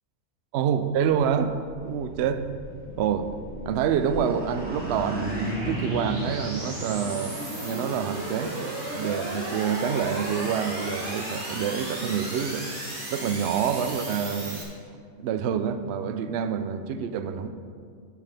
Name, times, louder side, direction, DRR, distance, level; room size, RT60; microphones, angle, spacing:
voice 1, 0.5-1.5 1.8-2.4 3.0-3.3 3.6-8.7 8.9-12.7 13.1-14.6 15.2-17.5, right 7 dB, 65° right, 10 dB, 0.7 m, -27 dB
sound 1, 1.6-14.6, right 1 dB, 35° right, 1.9 m, -36 dB
sound 2, 3.9-7.4, right 1 dB, 5° right, 1.8 m, -34 dB
10.5 x 9.5 x 3.4 m, 2.2 s
omnidirectional pair, 1.5 m